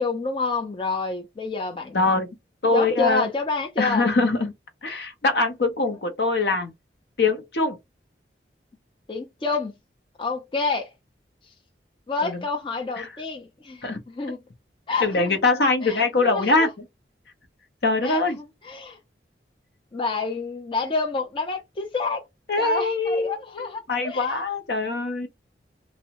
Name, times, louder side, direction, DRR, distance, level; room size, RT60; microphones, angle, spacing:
voice 1, 0.0-2.3 2.7-4.1 9.1-9.7 10.2-10.9 12.1-14.4 14.9-15.4 15.8-16.7 18.0-19.0 19.9-22.2 22.6-24.4, left 4 dB, 30° left, 0.4 m, -29 dB
voice 2, 1.9-2.3 2.6-3.3 3.8-4.5 4.8-6.7 7.2-7.8 12.2-12.4 13.0-13.1 13.8-14.0 15.0-16.7 17.8-18.4 22.5-25.3, left 3 dB, 65° left, 0.6 m, -23 dB
2.6 x 2.0 x 2.8 m
head